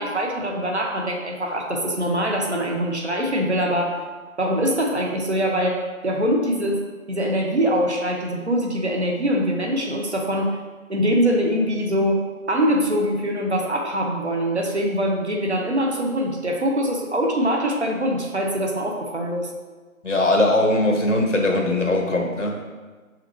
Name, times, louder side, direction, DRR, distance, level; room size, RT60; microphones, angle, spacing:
voice 1, 0.0-4.0 4.4-6.8 7.1-10.5 10.9-12.2 12.5-19.5, equal, 50° right, 1 dB, 1.0 m, -23 dB
voice 2, 20.0-22.6, left 2 dB, 60° left, 1 dB, 1.3 m, -20 dB
6.6 x 5.0 x 3.1 m, 1.4 s
figure-of-eight pair, 170°, 42 cm